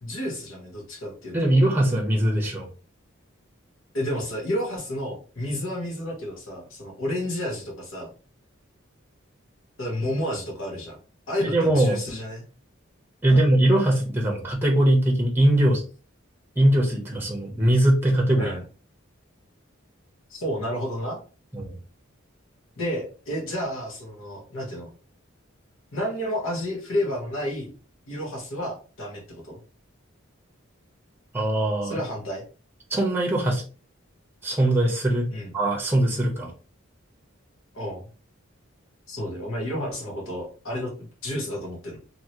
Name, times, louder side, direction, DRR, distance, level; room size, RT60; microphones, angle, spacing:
voice 1, 0.0-1.3 3.9-8.1 9.8-11.0 11.3-12.4 13.3-13.4 18.4-18.6 20.3-21.2 22.8-24.9 25.9-27.7 28.1-29.6 31.8-32.4 35.3-35.5 37.7-38.0 39.1-42.0, equal, 75° left, -2 dB, 1.3 m, -31 dB
voice 2, 1.3-2.7 11.4-12.0 13.2-15.8 16.6-18.5 21.5-21.8 31.3-32.0 32.9-33.6 34.4-35.3 35.5-36.5, right 1 dB, 10° right, 0 dB, 0.8 m, -21 dB
2.9 x 2.8 x 2.8 m, 0.36 s
head